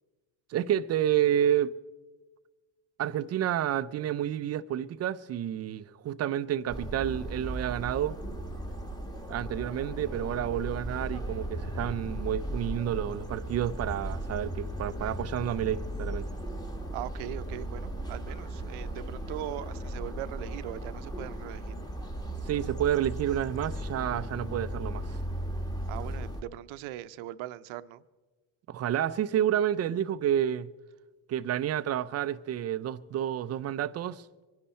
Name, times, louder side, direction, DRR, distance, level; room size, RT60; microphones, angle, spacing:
voice 1, 0.5-1.7 3.0-8.1 9.3-16.2 22.4-25.2 28.7-30.7 31.3-34.3, right 10 dB, 35° right, 0.4 m, -29 dB
sound 1, 6.7-26.4, right 1 dB, 10° left, 1.4 m, -36 dB
voice 2, 16.9-21.8 25.9-28.0, right 14 dB, 70° right, 0.7 m, -40 dB
24.0 x 11.0 x 4.3 m
cardioid pair, 130°, 50 cm